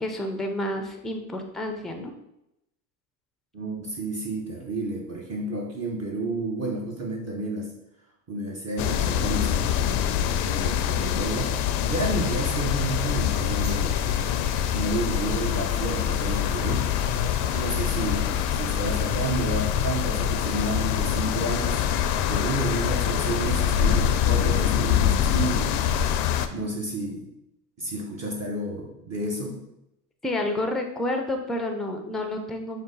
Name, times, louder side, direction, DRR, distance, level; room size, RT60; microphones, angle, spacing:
voice 1, 0.0-2.1 30.2-32.8, left 1 dB, ahead, 4 dB, 0.4 m, -30 dB
voice 2, 3.5-7.7 8.3-14.0 14.7-16.9 17.5-21.8 22.3-25.7 26.5-27.3 27.8-29.6, right 2 dB, 35° right, -2 dB, 0.9 m, -31 dB
sound 1, 8.8-26.5, left 9 dB, 60° left, 0.5 m, -25 dB
sound 2, 13.5-19.3, right 2 dB, 80° right, 1.0 m, -46 dB
5.1 x 2.2 x 3.8 m, 0.85 s
hypercardioid pair, 80°, 45 cm